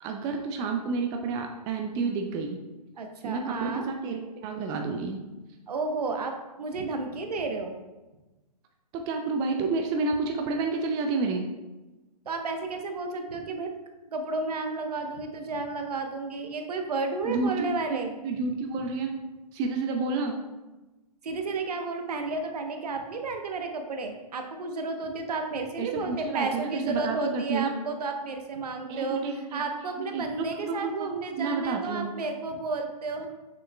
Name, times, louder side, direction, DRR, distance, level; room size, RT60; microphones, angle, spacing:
voice 1, 0.0-2.6 3.2-5.2 8.9-11.5 17.2-19.1 19.5-20.4 25.8-27.7 28.9-29.7 30.0-31.1 31.4-32.1, right 4 dB, 20° right, 3 dB, 0.4 m, -30 dB
voice 2, 3.0-3.9 5.7-7.8 12.2-13.7 14.1-18.1 18.8-18.9 21.2-29.2 29.5-33.3, right 3 dB, 65° right, 4 dB, 1.0 m, -32 dB
7.3 x 6.2 x 2.3 m, 1.1 s
hypercardioid pair, 130°, 21 cm